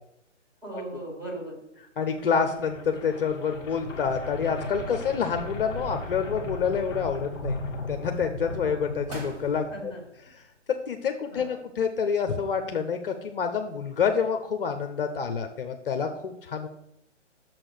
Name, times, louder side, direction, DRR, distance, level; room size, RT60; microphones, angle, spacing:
voice 1, 0.6-1.6 9.7-10.0 11.3-11.6, right 2 dB, 10° right, -4 dB, 2.6 m, -37 dB
voice 2, 2.0-7.6 7.9-9.6 10.7-16.7, left 6 dB, 45° left, 6 dB, 0.8 m, -27 dB
sound 1, 2.0-10.0, left 2 dB, 10° left, 1.2 m, -37 dB
sound 2, 5.5-6.1 6.5-7.4 7.9-8.3 8.8-8.9 9.1-11.0 11.3-11.4, right 2 dB, 30° right, 1.7 m, -47 dB
6.6 x 6.1 x 6.5 m, 0.81 s
hypercardioid pair, 150°, 37 cm